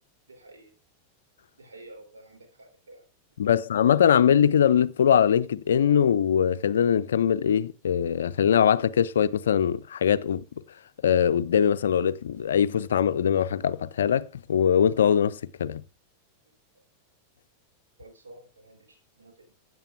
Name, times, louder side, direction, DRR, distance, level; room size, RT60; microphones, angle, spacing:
voice 1, 0.3-0.7 1.6-3.0 18.0-19.5, right 2 dB, 70° right, 3.2 m, -50 dB
voice 2, 3.4-10.4 11.0-15.8, left 8 dB, 65° left, 0.5 m, -22 dB
15.5 x 9.3 x 2.4 m
figure-of-eight pair, 90°, 0 cm